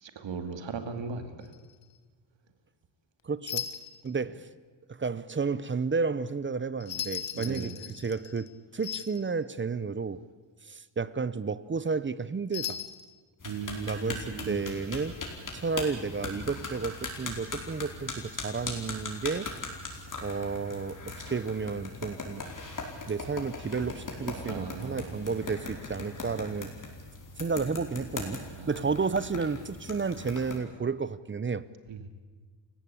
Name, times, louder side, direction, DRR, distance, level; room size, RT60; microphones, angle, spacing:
voice 1, 0.0-1.5 4.1-4.2 7.3-7.8 13.4-14.6 24.4-25.5 28.6-28.8 31.9-32.1, right 5 dB, 80° right, 8 dB, 2.6 m, -38 dB
sound 1, 1.4-1.7 3.5-4.1 6.8-8.5 8.8-9.3 12.5-13.1, left 9 dB, 80° left, 1.6 m, -37 dB
voice 2, 3.2-3.7 4.0-4.4 4.9-7.7 8.0-10.2 10.7-12.8 13.8-15.2 15.5-19.5 20.2-22.4 23.1-26.7 27.4-31.7, right 4 dB, 25° right, 17 dB, 0.7 m, -32 dB
sound 2, 13.4-30.6, left 3 dB, 45° left, 4.7 m, -40 dB
29.5 x 16.5 x 8.6 m, 1.5 s
wide cardioid pair, 150°, 44 cm